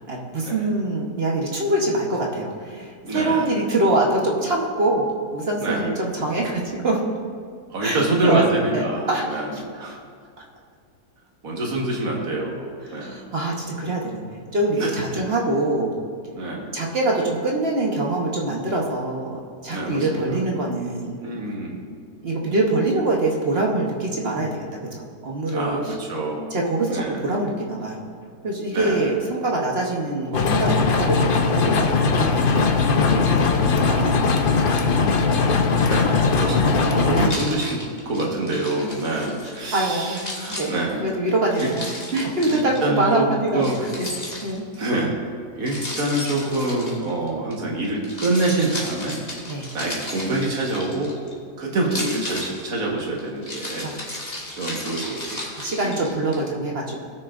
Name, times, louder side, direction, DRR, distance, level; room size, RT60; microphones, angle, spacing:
voice 1, 0.1-5.1 5.3-7.0 7.8-8.4 8.7-9.6 12.9-15.9 16.4-21.2 22.2-24.6 24.9-25.9 26.5-28.1 28.4-32.5 33.9-34.6 35.2-35.4 37.1-37.3 39.1-39.2 39.7-43.6 44.0-44.1 44.4-44.6 49.5-49.7 53.8-54.0 55.6-57.0, right 2 dB, 45° right, -1 dB, 1.2 m, -24 dB
voice 2, 2.7-3.6 5.6-5.9 7.7-10.0 11.4-13.2 14.8-15.2 16.3-16.8 19.7-20.4 21.2-21.8 25.5-26.5 26.9-27.2 28.7-29.1 35.9-41.1 41.6-41.7 42.5-43.3 43.5-43.8 44.8-45.1 45.6-49.2 49.7-51.1 51.6-53.9 54.6-55.5 55.8-56.0, right 2 dB, 60° right, -2 dB, 1.9 m, -26 dB
sound 1, 30.3-37.3, left 4 dB, 60° left, 0.5 m, -19 dB
Keys jangling, 37.3-39.7 40.1-42.8 43.6-44.8 45.7-47.5 47.9-51.3 51.8-56.4, left 1 dB, 25° left, 1.6 m, -34 dB
18.0 x 6.5 x 2.5 m, 2.1 s
omnidirectional pair, 1.7 m